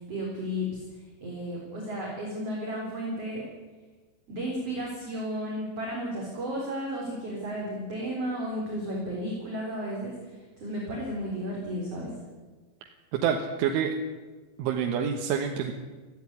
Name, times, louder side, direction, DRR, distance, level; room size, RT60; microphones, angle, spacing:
voice 1, 0.1-3.4 4.3-12.2, equal, 35° right, -3 dB, 4.5 m, -33 dB
voice 2, 12.8-14.0 14.6-15.7, right 8 dB, 85° right, 3 dB, 3.7 m, -28 dB
17.0 x 16.0 x 9.9 m, 1.4 s
omnidirectional pair, 5.4 m